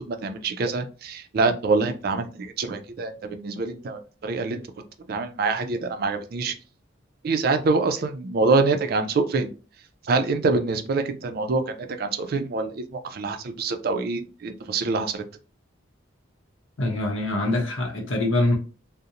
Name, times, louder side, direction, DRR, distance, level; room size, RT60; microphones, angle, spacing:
voice 1, 0.1-4.6 5.1-6.5 7.2-9.5 10.0-15.2, right 3 dB, 50° right, 0.3 m, -25 dB
voice 2, 16.8-18.6, left 2 dB, 80° left, 0.7 m, -24 dB
2.5 x 2.0 x 2.8 m
head